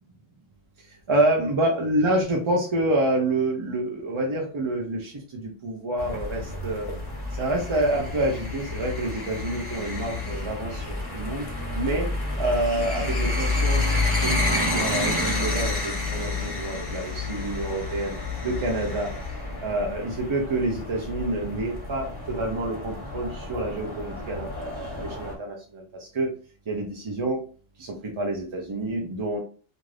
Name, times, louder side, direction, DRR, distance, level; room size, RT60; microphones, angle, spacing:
voice 1, 0.8-6.9 7.4-11.5 11.7-12.1 12.4-13.8 14.2-14.4 14.7-18.2 18.4-19.1 19.6-26.3 26.7-27.4 27.8-29.4, right 1 dB, 45° right, -1 dB, 0.4 m, -27 dB
sound 1, 6.0-25.3, left 2 dB, 25° left, 0.8 m, -29 dB
2.5 x 2.4 x 3.2 m, 0.39 s
omnidirectional pair, 1.0 m